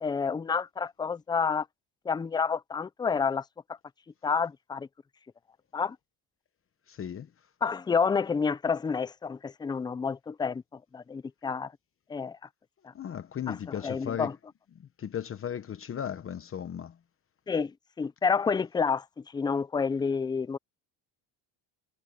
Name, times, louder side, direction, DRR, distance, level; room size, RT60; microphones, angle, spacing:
voice 1, 0.0-1.7 2.1-3.4 4.2-4.9 5.7-6.0 7.6-10.6 10.9-11.7 12.1-12.4 13.5-13.6 13.8-14.3 17.5-19.1 19.3-20.6, left 5 dB, 10° left, 0.3 m, -29 dB
voice 2, 6.9-7.3 12.9-14.3 14.8-17.0, left 9 dB, 30° left, 0.9 m, -36 dB
cardioid pair, 135°, 41 cm